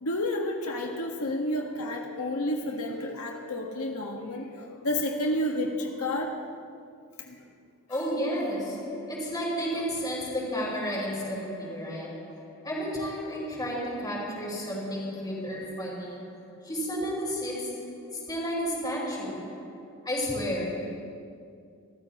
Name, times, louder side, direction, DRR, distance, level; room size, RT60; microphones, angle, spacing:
voice 1, 0.0-6.3 7.2-7.4 7.9-8.1 9.7-9.8, left 1 dB, 85° left, 1 dB, 1.6 m, -31 dB
voice 2, 7.9-21.0, equal, 20° left, -5 dB, 4.9 m, -32 dB
30.0 x 14.0 x 3.0 m, 2.3 s
head